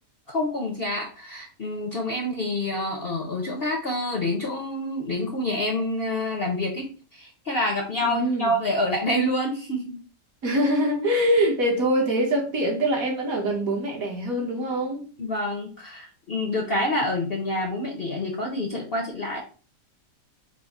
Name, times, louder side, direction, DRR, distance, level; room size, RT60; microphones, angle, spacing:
voice 1, 0.3-10.0 15.2-19.4, left 1 dB, 55° left, 0.7 m, -27 dB
voice 2, 8.0-8.5 10.4-15.0, right 1 dB, 60° right, 1.4 m, -24 dB
4.7 x 2.0 x 4.1 m
omnidirectional pair, 1.8 m